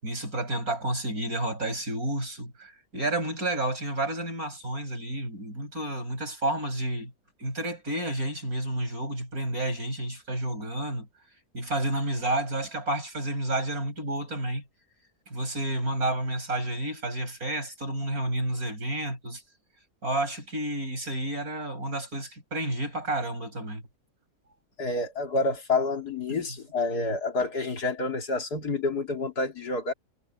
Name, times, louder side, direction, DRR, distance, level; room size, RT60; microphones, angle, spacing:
voice 1, 0.0-7.1 7.4-11.1 11.5-14.6 15.3-19.4 20.0-23.8, right 1 dB, 65° right, 8.7 m, -30 dB
voice 2, 24.8-29.9, left 3 dB, 85° left, 3.6 m, -28 dB
omnidirectional pair, 1.6 m